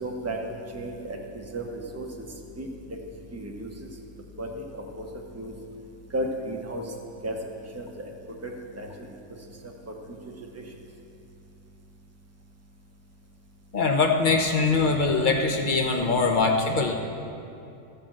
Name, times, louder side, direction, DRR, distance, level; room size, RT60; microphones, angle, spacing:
voice 1, 0.0-0.4 0.7-1.2 1.5-1.6 1.9-2.0 2.6-2.7 3.3-3.7 4.4-4.5 5.0-5.1 5.4-5.5 6.1-6.8 7.2-7.3 7.7-7.9 8.4-8.5 8.8-8.9, right 1 dB, 10° right, 0 dB, 0.9 m, -32 dB
voice 2, 13.7-16.9, left 4 dB, 40° left, 3 dB, 1.0 m, -22 dB
13.5 x 5.2 x 7.5 m, 2.7 s
omnidirectional pair, 1.5 m